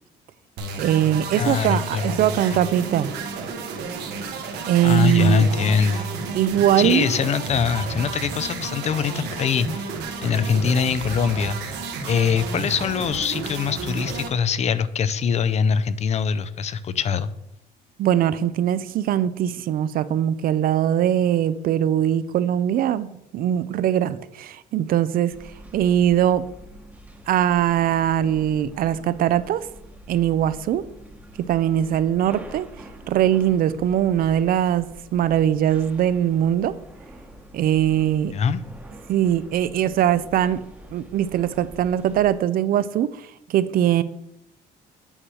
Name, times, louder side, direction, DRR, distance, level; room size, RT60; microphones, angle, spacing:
sound 1, 0.6-14.3, right 4 dB, 80° right, 1.3 m, -32 dB
voice 1, 0.8-3.1 4.7-5.4 6.3-7.1 18.0-25.3 25.7-26.4 27.3-29.6 30.1-30.8 31.4-32.7 33.1-36.7 37.5-38.3 39.1-40.6 40.9-43.2 43.5-44.0, right 10 dB, 60° right, 15 dB, 0.5 m, -21 dB
voice 2, 1.4-2.2 4.8-6.1 6.8-9.9 10.2-11.6 12.1-17.3 38.3-38.6, left 6 dB, 40° left, 16 dB, 0.5 m, -23 dB
sound 2, 25.3-42.3, right 1 dB, 10° right, 1.0 m, -45 dB
8.6 x 3.2 x 6.2 m, 0.81 s
cardioid pair, 110°, 17 cm